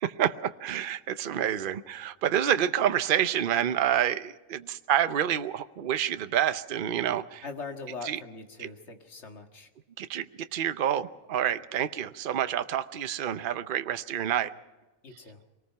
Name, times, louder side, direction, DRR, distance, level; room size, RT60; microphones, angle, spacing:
voice 1, 0.0-7.4 8.0-8.2 8.6-8.7 10.0-14.5, right 10 dB, 50° right, 12 dB, 0.8 m, -28 dB
voice 2, 7.4-9.7 15.0-15.4, left 4 dB, 55° left, 5 dB, 2.0 m, -41 dB
24.5 x 19.0 x 5.8 m, 1.2 s
omnidirectional pair, 1.4 m